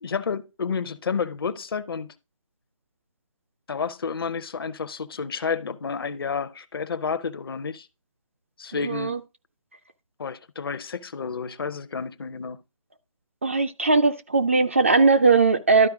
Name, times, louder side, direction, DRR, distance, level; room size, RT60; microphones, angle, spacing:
voice 1, 0.0-2.1 3.7-7.9 8.6-9.1 10.2-12.6, left 5 dB, 45° left, 0.7 m, -30 dB
voice 2, 8.8-9.2 13.4-15.9, right 4 dB, 25° right, 0.3 m, -19 dB
12.0 x 4.6 x 3.5 m
figure-of-eight pair, 150°, 17 cm